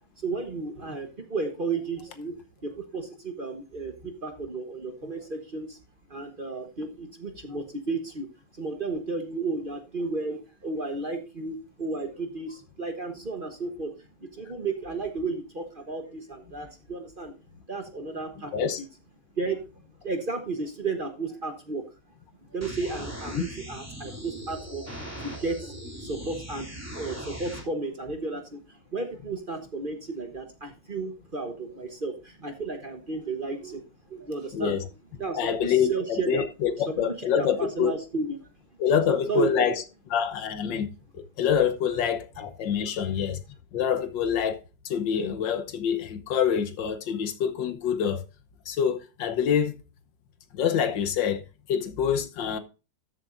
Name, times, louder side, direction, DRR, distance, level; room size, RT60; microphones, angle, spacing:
voice 1, 0.2-2.4 2.6-5.8 6.1-8.3 8.6-13.9 14.3-17.3 17.7-18.7 19.4-19.6 20.0-21.8 22.5-24.8 25.2-25.7 26.0-33.8 34.1-34.8 35.2-36.4 37.0-37.1 37.3-38.4 39.1-39.7, right 3 dB, 35° right, 1.1 m, -33 dB
sound 1, 22.6-27.6, equal, 10° right, 2.7 m, -39 dB
voice 2, 34.5-34.8 35.3-37.9 38.8-39.8 40.1-40.9 41.1-43.4 43.7-44.6 44.8-48.2 48.7-49.8 50.5-51.4 51.7-52.6, left 8 dB, 80° left, 1.7 m, -26 dB
13.0 x 7.5 x 2.6 m
omnidirectional pair, 2.0 m